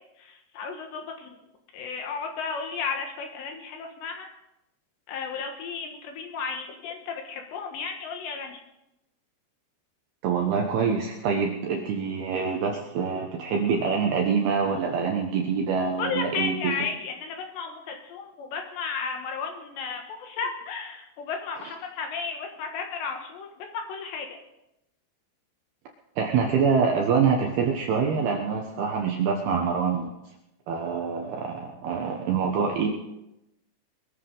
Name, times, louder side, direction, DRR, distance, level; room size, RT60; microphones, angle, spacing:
voice 1, 0.2-1.3 1.7-4.3 5.1-8.6 16.0-24.4, left 5 dB, 70° left, 3 dB, 3.2 m, -34 dB
voice 2, 10.2-16.7 26.2-30.1 30.7-32.9, right 6 dB, 70° right, 1 dB, 2.4 m, -25 dB
22.0 x 14.0 x 3.9 m, 0.89 s
omnidirectional pair, 6.0 m